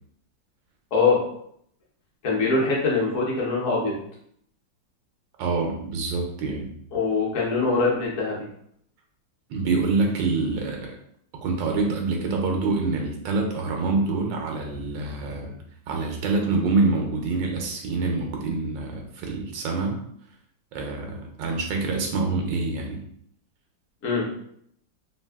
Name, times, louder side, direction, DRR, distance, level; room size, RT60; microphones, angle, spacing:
voice 1, 2.2-4.0 6.9-8.4 24.0-24.2, left 4 dB, 55° left, -3 dB, 1.0 m, -23 dB
voice 2, 5.4-6.7 9.5-11.0 11.4-15.6 15.9-20.0 20.7-23.0, right 3 dB, 80° right, 1 dB, 1.3 m, -26 dB
3.3 x 2.6 x 2.2 m, 0.69 s
omnidirectional pair, 2.1 m